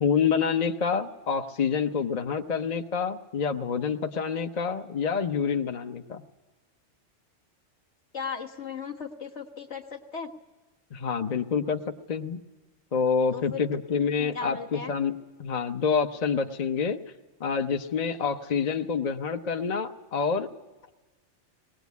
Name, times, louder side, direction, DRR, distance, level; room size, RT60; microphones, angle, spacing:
voice 1, 0.0-6.2 10.9-12.4 12.9-15.1 15.4-17.0 17.4-20.5, left 6 dB, 40° left, 5 dB, 0.8 m, -27 dB
voice 2, 8.1-10.3 13.3-13.7 14.2-14.9, left 6 dB, 65° left, 2 dB, 1.7 m, -37 dB
20.0 x 18.5 x 8.3 m, 1.2 s
omnidirectional pair, 1.2 m